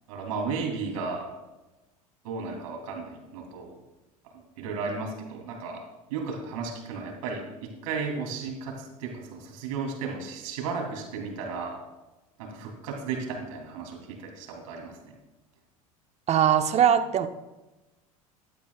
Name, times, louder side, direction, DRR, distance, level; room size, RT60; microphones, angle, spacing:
voice 1, 0.1-1.3 2.2-3.8 4.3-11.8 12.4-15.1, right 4 dB, 70° right, 1 dB, 3.3 m, -34 dB
voice 2, 16.3-17.3, right 9 dB, 35° right, 9 dB, 1.0 m, -21 dB
16.0 x 12.0 x 2.4 m, 1.1 s
hypercardioid pair, 75°, 19 cm